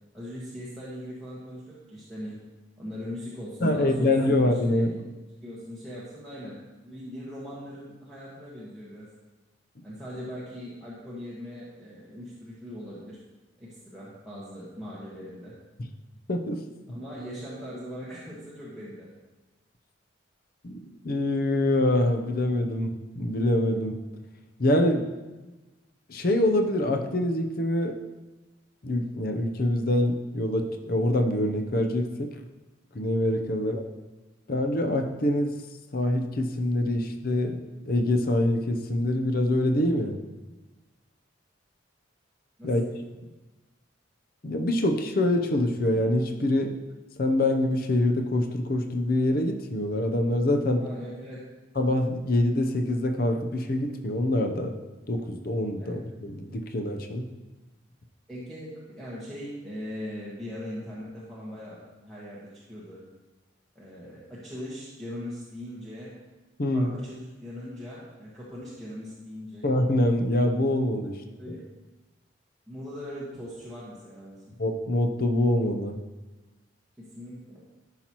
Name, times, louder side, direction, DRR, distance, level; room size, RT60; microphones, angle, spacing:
voice 1, 0.1-2.3 2.8-5.0 5.4-9.1 9.8-13.2 13.6-15.5 16.9-19.1 33.5-33.7 42.6-42.9 50.8-51.4 55.8-56.0 58.3-63.0 63.7-66.1 66.7-69.7 71.4-71.6 72.7-74.5 77.0-77.6, equal, ahead, -9 dB, 1.4 m, -40 dB
voice 2, 3.6-4.9 16.3-16.6 20.6-24.0 24.6-25.1 26.1-28.0 28.8-32.4 32.9-33.8 34.5-35.6 35.9-37.6 37.9-40.2 42.6-42.8 44.4-46.7 47.2-50.8 51.8-54.7 55.1-57.2 66.6-66.9 69.6-71.2 71.5-71.6 74.6-76.0, left 1 dB, 50° left, 4 dB, 0.7 m, -25 dB
13.0 x 5.8 x 3.0 m, 1.1 s
head